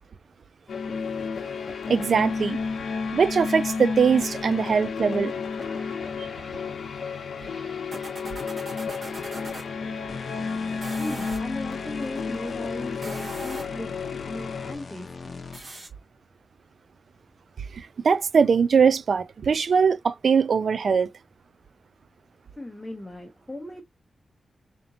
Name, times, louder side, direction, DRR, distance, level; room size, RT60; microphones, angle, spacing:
sound 1, 0.7-14.8, left 5 dB, 80° left, 0.7 m, -32 dB
voice 1, 1.9-2.6 3.1-5.3 17.7-21.1, right 6 dB, 55° right, 0.3 m, -21 dB
sound 2, 5.5-9.7 10.7-11.4 12.9-13.8 15.5-15.9, right 2 dB, 40° right, 2.4 m, -41 dB
sound 3, 10.1-15.8, left 5 dB, 35° left, 0.7 m, -41 dB
voice 2, 11.0-15.4 22.6-23.8, left 1 dB, 10° left, 0.9 m, -37 dB
4.2 x 2.8 x 2.7 m
wide cardioid pair, 155°, 0 cm